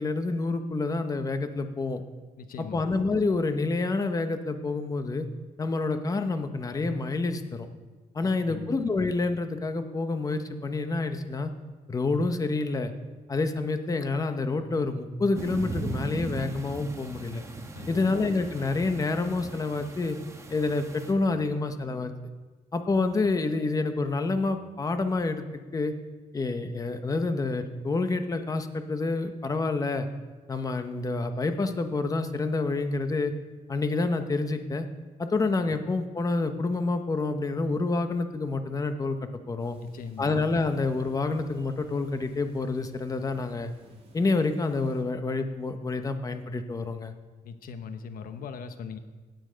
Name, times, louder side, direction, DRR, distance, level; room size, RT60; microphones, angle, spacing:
voice 1, 0.0-2.0 2.7-5.3 5.6-7.7 8.1-11.5 11.9-12.9 13.3-17.4 17.9-20.2 20.5-22.1 22.7-25.4 25.7-25.9 26.3-30.1 30.5-33.3 33.7-34.9 35.2-39.8 40.2-43.7 44.1-47.1, left 3 dB, 25° left, 8 dB, 0.9 m, -28 dB
voice 2, 2.4-2.9 8.2-8.7 17.7-18.2 39.8-40.3 47.4-49.0, left 6 dB, 70° left, 9 dB, 1.1 m, -40 dB
sound 1, 15.3-21.1, right 3 dB, 20° right, 1.2 m, -38 dB
sound 2, 39.6-45.0, right 2 dB, 40° right, 2.5 m, -54 dB
17.0 x 9.0 x 5.1 m, 1.4 s
cardioid pair, 145°, 15 cm